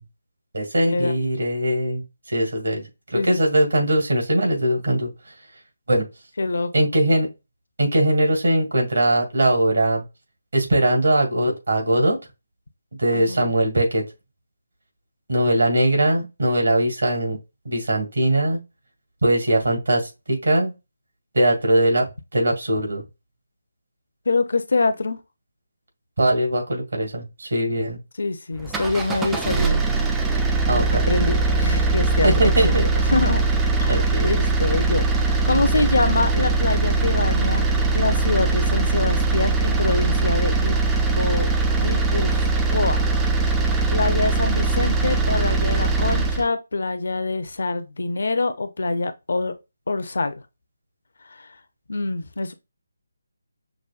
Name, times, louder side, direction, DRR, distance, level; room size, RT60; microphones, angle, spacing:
voice 1, 0.5-5.1 5.9-6.0 6.7-7.3 7.8-10.0 10.5-12.2 13.0-14.0 15.3-17.4 17.7-18.6 19.2-20.7 21.3-22.1 22.3-23.0 26.2-28.0 30.7-31.1 32.2-32.8 33.9-34.3, right 1 dB, 65° right, 1.9 m, -20 dB
voice 2, 6.4-6.9 13.1-13.5 24.3-25.2 28.2-29.8 30.7-32.3 32.6-32.7 33.1-33.4 33.8-33.9 34.2-37.7 37.9-40.8 41.1-41.5 41.8-42.4 42.7-43.1 43.5-43.6 43.9-49.5 49.9-50.4 51.3-51.5 51.9-52.5, left 3 dB, 60° left, 0.6 m, -25 dB
sound 1, 28.6-46.5, right 3 dB, 10° right, 0.4 m, -21 dB
6.0 x 2.2 x 2.4 m
figure-of-eight pair, 150°, 0 cm